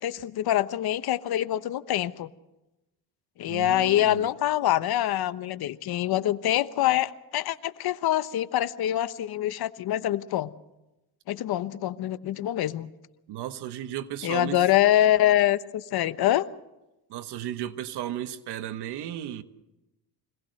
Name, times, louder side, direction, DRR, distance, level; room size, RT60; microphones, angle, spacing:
voice 1, 0.0-2.3 3.4-10.5 11.3-12.9 14.2-16.5, left 13 dB, 65° left, 13 dB, 1.1 m, -25 dB
voice 2, 3.5-4.3 13.3-14.6 17.1-19.4, right 11 dB, 75° right, 10 dB, 1.5 m, -34 dB
25.0 x 18.5 x 6.5 m, 0.96 s
cardioid pair, 115°, 40 cm